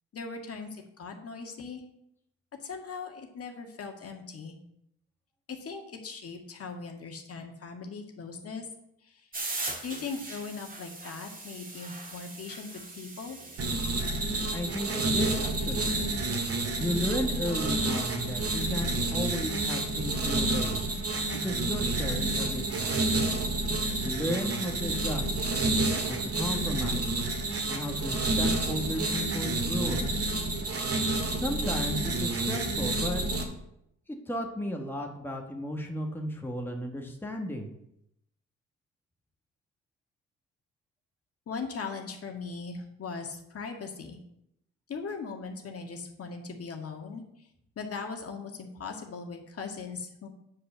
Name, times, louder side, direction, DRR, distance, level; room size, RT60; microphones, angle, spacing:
voice 1, 0.1-1.8 2.6-4.5 5.5-8.7 9.1-9.2 9.8-13.4 41.5-44.2 44.9-47.2 47.8-50.3, left 4 dB, 50° left, 3 dB, 1.9 m, -39 dB
sound 1, 9.3-14.1, right 2 dB, 30° right, 2.2 m, -40 dB
sound 2, 13.6-33.4, right 2 dB, 50° right, 2.2 m, -29 dB
voice 2, 14.5-15.9 16.7-20.8 21.4-23.0 24.0-25.3 26.1-27.1 27.7-30.2 31.3-33.2 34.1-37.7, left 1 dB, 5° left, 2 dB, 1.6 m, -34 dB
9.3 x 5.6 x 6.9 m, 0.79 s
cardioid pair, 90°, 30 cm